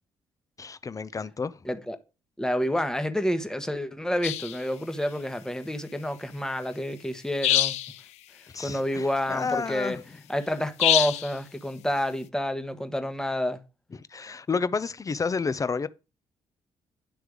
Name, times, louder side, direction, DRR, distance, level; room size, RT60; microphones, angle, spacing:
voice 1, 0.6-1.6 8.5-10.0 13.9-15.9, left 5 dB, 30° left, 0.6 m, -30 dB
voice 2, 1.6-2.0 2.4-7.8 8.6-10.0 10.3-13.6, equal, 5° left, 1.1 m, -29 dB
sound 1, 4.2-4.6 7.4-8.0 10.8-11.3, left 13 dB, 80° left, 0.4 m, -24 dB
9.7 x 3.3 x 4.9 m
supercardioid pair, 55°, 11 cm